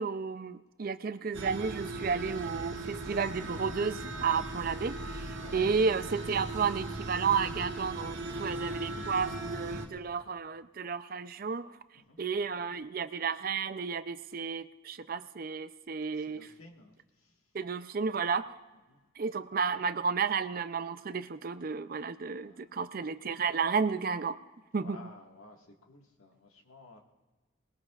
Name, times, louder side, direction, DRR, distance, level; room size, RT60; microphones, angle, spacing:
voice 1, 0.0-11.8 12.2-16.5 17.5-18.5 19.2-24.4 24.7-25.0, right 5 dB, 45° right, 13 dB, 0.4 m, -32 dB
sound 1, 1.3-9.9, right 2 dB, 65° right, 1.7 m, -38 dB
voice 2, 5.4-5.7 11.9-12.2 16.1-17.4 18.9-19.0 22.3-22.8 24.8-27.0, left 2 dB, 90° left, 1 dB, 1.7 m, -54 dB
20.5 x 20.5 x 2.4 m, 1.2 s
head